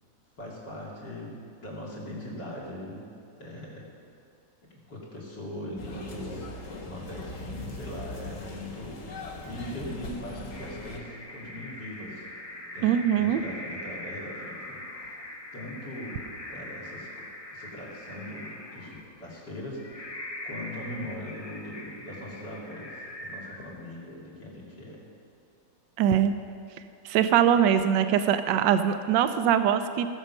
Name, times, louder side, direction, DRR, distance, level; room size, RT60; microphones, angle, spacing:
voice 1, 0.4-3.0 3.4-3.9 4.9-6.5 6.8-12.2 12.7-15.2 15.5-16.2 16.5-17.1 17.5-20.1 20.4-25.0, left 1 dB, 65° left, -4 dB, 3.3 m, -40 dB
sound 1, 5.8-11.0, left 2 dB, 50° left, 1.4 m, -40 dB
sound 2, 10.5-24.0, left 1 dB, 25° left, 0.9 m, -42 dB
voice 2, 12.8-13.4 26.0-26.4 27.0-30.1, right 9 dB, 85° right, 10 dB, 1.3 m, -22 dB
17.5 x 7.3 x 5.4 m, 2.6 s
omnidirectional pair, 1.9 m